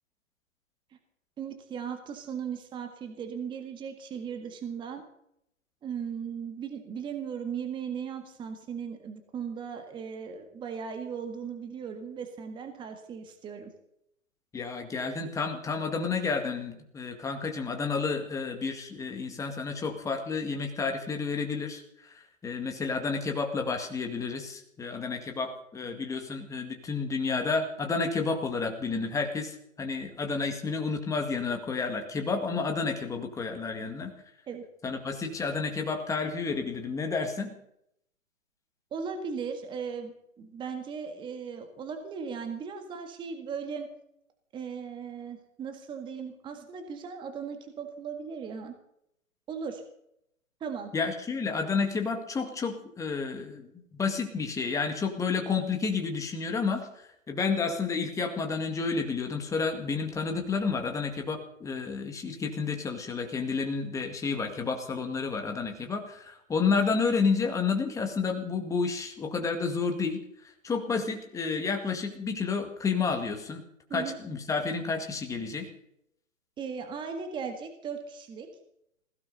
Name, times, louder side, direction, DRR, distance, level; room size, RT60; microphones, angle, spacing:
voice 1, 1.4-5.0 5.8-13.7 34.5-34.7 38.9-43.9 44.5-48.7 49.5-49.8 50.6-50.9 73.9-74.2 76.6-78.5, right 6 dB, 10° right, 6 dB, 1.7 m, -37 dB
voice 2, 14.5-34.1 34.8-37.5 50.9-73.6 73.9-75.7, left 4 dB, 10° left, 4 dB, 1.9 m, -30 dB
21.0 x 16.5 x 4.1 m, 0.75 s
figure-of-eight pair, 135°, 41 cm